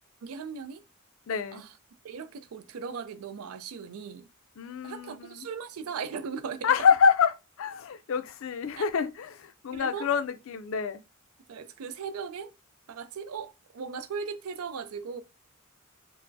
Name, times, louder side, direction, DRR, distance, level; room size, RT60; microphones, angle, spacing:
voice 1, 0.2-0.8 1.5-1.7 2.0-4.3 4.8-6.7 8.8-8.9 9.7-10.1 11.5-12.5 12.9-15.2, right 6 dB, 90° right, 0.4 m, -38 dB
voice 2, 1.3-1.6 4.6-5.5 6.6-11.0, left 6 dB, 65° left, 0.4 m, -27 dB
4.4 x 2.0 x 2.5 m
head